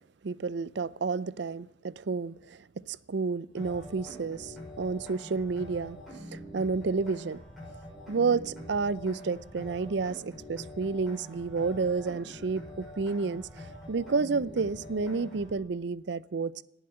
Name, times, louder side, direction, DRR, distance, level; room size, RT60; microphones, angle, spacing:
voice 1, 0.2-2.3 2.9-6.0 6.3-7.4 8.1-13.5 13.9-16.6, right 4 dB, 60° right, 0.5 m, -30 dB
sound 1, 3.5-15.5, equal, ahead, 6.1 m, -45 dB
18.0 x 8.1 x 7.6 m
head